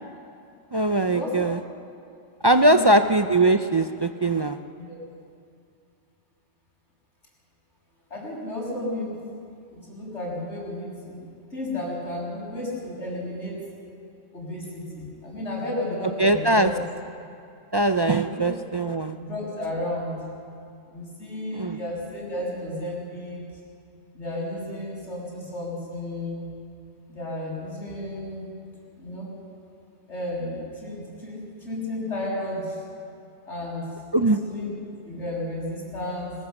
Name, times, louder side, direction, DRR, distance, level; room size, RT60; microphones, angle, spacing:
voice 1, 0.7-1.6 2.4-4.6 16.2-16.7 17.7-19.2 21.5-21.8 34.1-34.4, right 1 dB, 40° right, 8 dB, 0.4 m, -21 dB
voice 2, 2.6-3.0 4.8-5.0 8.1-9.1 9.7-11.2 11.5-13.6 14.3-16.8 18.2-18.4 19.2-20.2 20.9-23.4 24.1-26.5 27.1-28.5 29.0-29.3 30.1-32.8 33.5-33.9 34.1-34.7 35.0-36.3, left 1 dB, 90° left, -4 dB, 6.6 m, -33 dB
21.5 x 19.0 x 7.2 m, 2.5 s
omnidirectional pair, 1.2 m